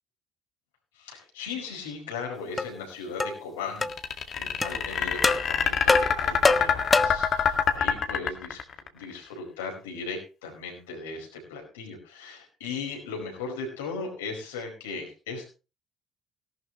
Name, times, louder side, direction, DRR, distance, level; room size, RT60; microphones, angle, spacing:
voice 1, 0.9-8.6 8.9-15.5, left 4 dB, 75° left, 2 dB, 4.9 m, -37 dB
sound 1, 2.6-2.7 3.2-3.4 3.8-3.9 4.6-4.7 5.2-5.4 5.9-7.3, left 3 dB, 25° left, 0.9 m, -23 dB
sound 2, 3.8-8.9, left 7 dB, 50° left, 1.9 m, -25 dB
18.0 x 12.0 x 3.1 m, 0.32 s
figure-of-eight pair, 50°, 0 cm